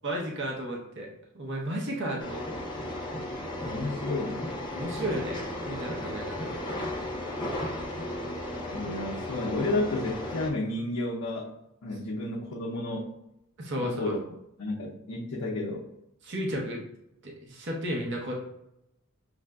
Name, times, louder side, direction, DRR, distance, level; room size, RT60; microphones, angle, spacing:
voice 1, 0.0-1.1 1.3-2.7 4.7-6.5 13.6-14.1 16.2-16.8 17.2-18.3, equal, 60° right, -1 dB, 0.8 m, -33 dB
sound 1, 2.2-10.5, left 1 dB, 20° left, 0.6 m, -35 dB
voice 2, 3.6-4.5 8.7-11.5 11.8-13.1 13.8-14.2 14.6-15.9, left 2 dB, 85° left, -3 dB, 0.6 m, -31 dB
6.0 x 2.5 x 2.2 m, 0.81 s
head